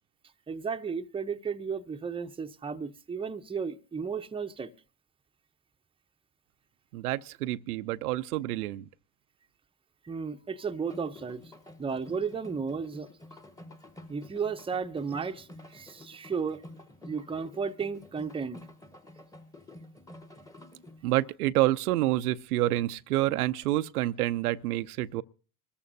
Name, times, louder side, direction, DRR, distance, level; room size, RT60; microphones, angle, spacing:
voice 1, 0.5-4.7 10.0-11.4 11.8-13.1 14.1-16.6 17.1-18.6, right 5 dB, 15° right, 0.7 m, -34 dB
voice 2, 6.9-8.9 21.0-25.2, right 16 dB, 85° right, 0.6 m, -28 dB
sound 1, 10.9-21.2, left 1 dB, 10° left, 1.1 m, -50 dB
25.0 x 14.0 x 2.6 m
hypercardioid pair, 80°, 43 cm